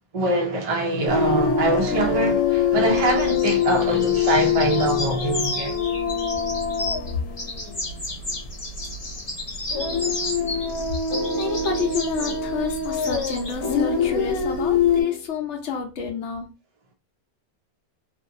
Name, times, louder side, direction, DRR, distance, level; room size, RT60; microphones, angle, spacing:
voice 1, 0.1-5.8, right 2 dB, 60° right, 0.3 m, -24 dB
sound 1, 1.1-8.5 8.8-9.0 9.7-15.0, left 6 dB, 80° left, 1.1 m, -24 dB
sound 2, 2.9-7.1 7.4-13.5, left 2 dB, 30° left, 0.6 m, -33 dB
sound 3, 9.7-15.3, left 4 dB, 10° right, 1.1 m, -34 dB
voice 2, 11.4-16.5, left 6 dB, 60° left, 0.9 m, -29 dB
2.6 x 2.6 x 2.6 m
omnidirectional pair, 1.6 m